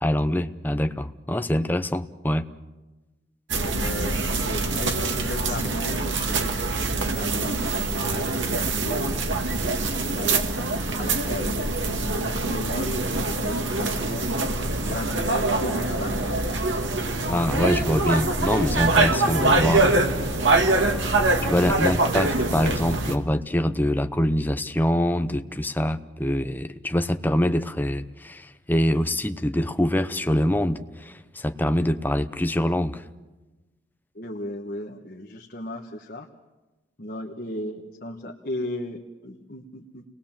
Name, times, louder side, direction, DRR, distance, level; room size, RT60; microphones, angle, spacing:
voice 1, 0.0-2.4 17.3-20.4 21.4-33.0, left 1 dB, 10° left, 8 dB, 0.8 m, -25 dB
sound 1, 3.5-23.2, right 2 dB, 85° right, 2.0 m, -24 dB
voice 2, 3.6-9.1 10.0-10.4 11.0-13.0 13.4-14.3 14.8-16.4 17.3-17.4 34.1-36.3 37.0-40.0, left 1 dB, 50° left, 1 dB, 1.4 m, -35 dB
29.5 x 19.5 x 7.5 m, 1.1 s
head